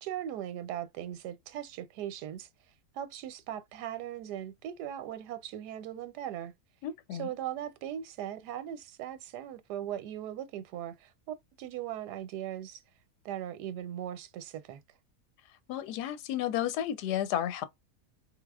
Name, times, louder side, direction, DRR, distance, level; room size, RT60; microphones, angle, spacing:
voice 1, 0.0-2.5 2.9-6.5 7.1-12.8 13.2-14.8, right 11 dB, 85° right, 1.2 m, -39 dB
voice 2, 6.8-7.3 15.7-17.6, left 11 dB, 85° left, 1.2 m, -32 dB
3.3 x 3.3 x 2.3 m
omnidirectional pair, 1.7 m